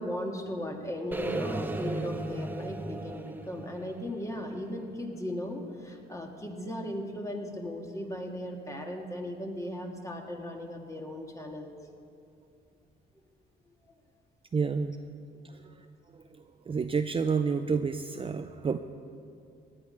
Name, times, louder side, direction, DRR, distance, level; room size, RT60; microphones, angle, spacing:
voice 1, 0.0-11.9, left 1 dB, 15° left, 2 dB, 1.9 m, -37 dB
sound 1, 1.1-5.2, right 2 dB, 10° right, 0.9 m, -36 dB
voice 2, 14.5-15.0 15.5-15.6 16.7-18.8, right 5 dB, 25° right, 8 dB, 0.5 m, -29 dB
17.5 x 9.9 x 5.3 m, 2.4 s
cardioid pair, 90°, 20 cm